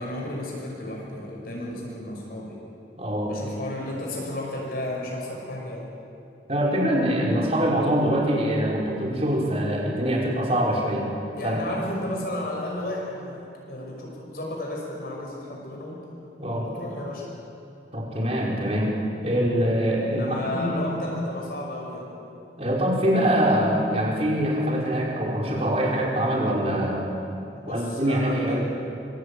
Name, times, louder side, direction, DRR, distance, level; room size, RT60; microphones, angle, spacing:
voice 1, 0.0-2.6 3.3-5.8 11.3-16.1 16.5-17.2 20.0-22.1 27.5-28.7, left 1 dB, 55° left, -2 dB, 5.6 m, -33 dB
voice 2, 2.9-3.3 6.5-11.1 11.4-11.6 16.4-16.7 17.9-18.9 19.2-20.8 22.6-27.1 27.7-28.7, equal, 35° right, -3 dB, 5.4 m, -24 dB
26.0 x 22.5 x 8.7 m, 2.8 s
head